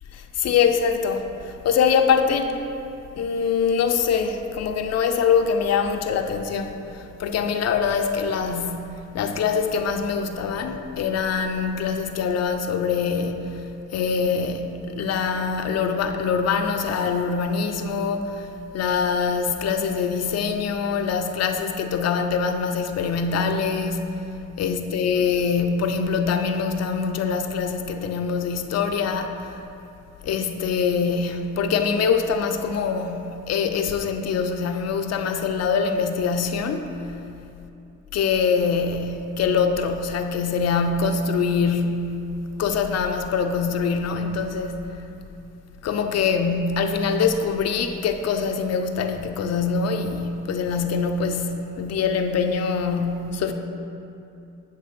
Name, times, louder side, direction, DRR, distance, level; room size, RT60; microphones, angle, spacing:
voice 1, 0.1-2.6 3.2-13.6 13.9-18.5 18.7-24.0 24.6-29.6 30.2-36.9 38.1-42.2 42.6-44.8 45.8-53.5, left 5 dB, 55° left, 6 dB, 0.5 m, -24 dB
8.3 x 3.3 x 5.8 m, 2.7 s
cardioid pair, 90°, 30 cm